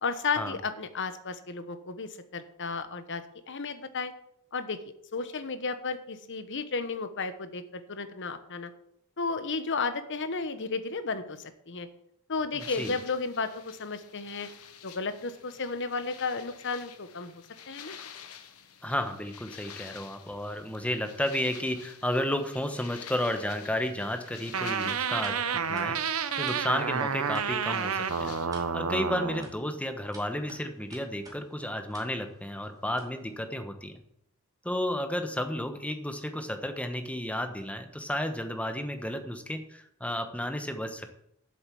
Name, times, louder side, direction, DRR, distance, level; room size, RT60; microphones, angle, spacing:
voice 1, 0.0-4.1 4.5-4.8 5.1-8.7 9.2-11.9 12.3-14.5 14.8-17.9, left 4 dB, 55° left, 11 dB, 1.1 m, -33 dB
voice 2, 12.5-12.9 18.8-34.0 34.6-41.1, left 1 dB, 5° left, 7 dB, 1.1 m, -32 dB
sound 1, 12.6-28.5, left 8 dB, 80° left, 1.1 m, -49 dB
sound 2, 24.5-29.5, right 6 dB, 70° right, 0.7 m, -30 dB
sound 3, 24.6-33.4, right 1 dB, 15° right, 2.5 m, -54 dB
7.9 x 7.5 x 8.5 m, 0.73 s
head